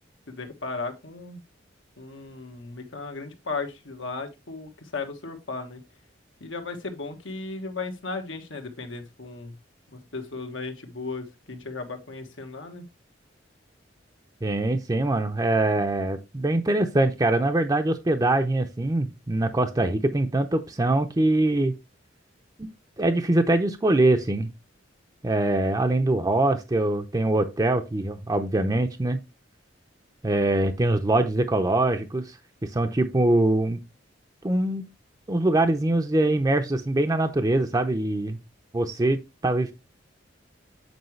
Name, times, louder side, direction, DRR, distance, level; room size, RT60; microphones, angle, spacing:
voice 1, 0.3-1.4 2.0-5.8 6.4-9.6 9.9-12.8, left 3 dB, 90° left, 1.5 m, -36 dB
voice 2, 14.4-21.8 22.6-22.7 23.0-24.5 25.2-29.2 30.2-32.3 32.6-33.8 34.4-34.8 35.3-38.4 38.7-39.7, right 2 dB, 20° right, 0.5 m, -23 dB
7.9 x 4.8 x 3.1 m
head